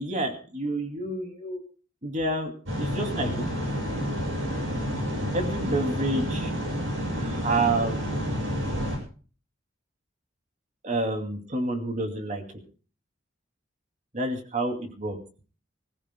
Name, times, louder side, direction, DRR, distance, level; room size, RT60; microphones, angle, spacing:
voice 1, 0.0-1.6 2.0-3.3 5.3-6.5 7.2-8.1 10.8-12.4 14.1-15.2, right 2 dB, 40° right, 4 dB, 2.6 m, -29 dB
sound 1, 2.7-9.0, equal, 85° right, 7.2 m, -29 dB
26.5 x 15.5 x 2.2 m, 0.38 s
head